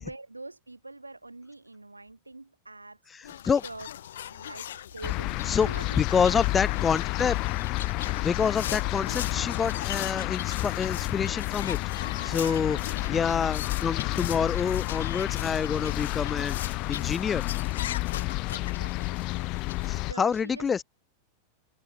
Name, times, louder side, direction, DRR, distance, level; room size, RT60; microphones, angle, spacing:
voice 1, 0.0-3.4 3.6-3.9 4.3-6.5 12.0-13.5 18.5-19.5 19.9-20.7, right 2 dB, 85° right, 6.3 m, -45 dB
voice 2, 3.1-3.6 5.5-5.7 6.0-7.4 8.2-11.8 12.2-12.8 13.1-16.6 16.9-17.4 19.9-20.8, left 6 dB, 20° left, 2.2 m, -27 dB
sound 1, 3.2-20.0, left 11 dB, 60° left, 3.3 m, -40 dB
sound 2, 5.0-20.1, left 22 dB, 40° left, 2.6 m, -30 dB
figure-of-eight pair, 90°, 0 cm